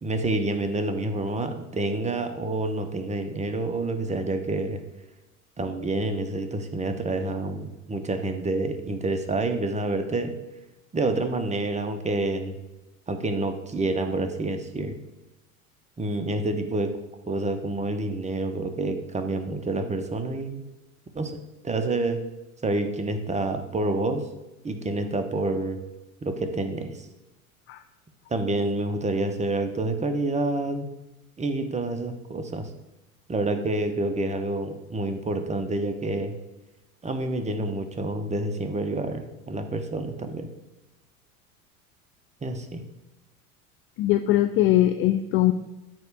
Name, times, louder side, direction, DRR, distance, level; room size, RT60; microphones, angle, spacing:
voice 1, 0.0-4.8 5.6-10.4 10.9-12.6 13.1-14.9 16.0-16.9 17.3-20.6 21.1-21.3 21.6-22.2 22.6-24.2 24.6-25.8 26.2-27.0 28.3-30.9 31.4-32.7 33.3-36.3 37.0-40.5 42.4-42.8, right 2 dB, 15° right, 6 dB, 1.0 m, -28 dB
voice 2, 44.0-45.5, left 14 dB, 30° left, 9 dB, 0.4 m, -21 dB
9.0 x 3.4 x 6.7 m, 0.99 s
figure-of-eight pair, 75°, 44 cm